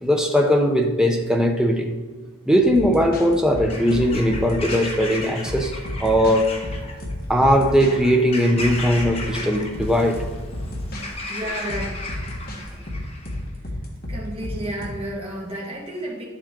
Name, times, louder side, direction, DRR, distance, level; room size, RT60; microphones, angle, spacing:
voice 1, 0.0-1.9 2.5-5.7 6.0-6.5 7.3-10.3, equal, 5° right, 0.7 m, -19 dB
sound 1, 2.6-4.9 5.5-8.0 8.6-9.5 9.7-11.1 11.7-14.9, left 1 dB, 45° left, 1.5 m, -32 dB
Bird vocalization bird call bird song / Crow, 3.5-13.4, left 2 dB, 25° left, 1.1 m, -35 dB
voice 2, 11.3-11.9 13.6-13.8 14.1-16.2, right 1 dB, 25° right, 1.7 m, -31 dB
11.5 x 7.3 x 3.8 m
head